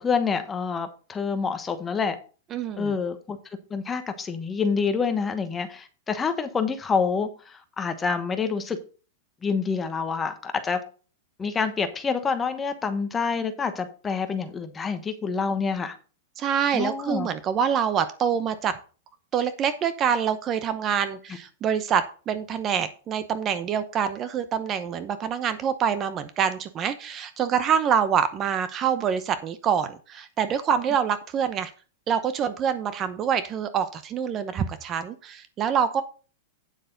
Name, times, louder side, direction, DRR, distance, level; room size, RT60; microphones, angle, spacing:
voice 1, 0.0-2.2 2.8-3.4 3.7-8.8 9.4-10.8 11.4-15.9 16.7-17.3, left 5 dB, 15° left, 1.1 m, -27 dB
voice 2, 2.5-3.0 16.4-18.7 19.3-31.7 32.1-36.0, right 8 dB, 25° right, 0.8 m, -26 dB
9.2 x 7.9 x 4.0 m
supercardioid pair, 155°, 0 cm